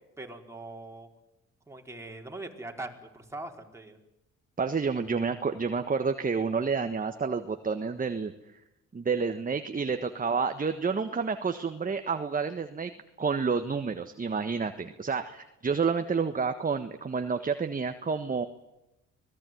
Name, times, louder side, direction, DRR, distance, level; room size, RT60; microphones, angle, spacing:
voice 1, 0.2-1.1 1.7-4.0, right 2 dB, 10° right, 2 dB, 4.7 m, -41 dB
voice 2, 4.6-8.3 8.9-12.9 13.2-18.5, right 5 dB, 25° right, 8 dB, 1.5 m, -29 dB
25.5 x 19.0 x 9.4 m, 0.91 s
cardioid pair, 90°, 30 cm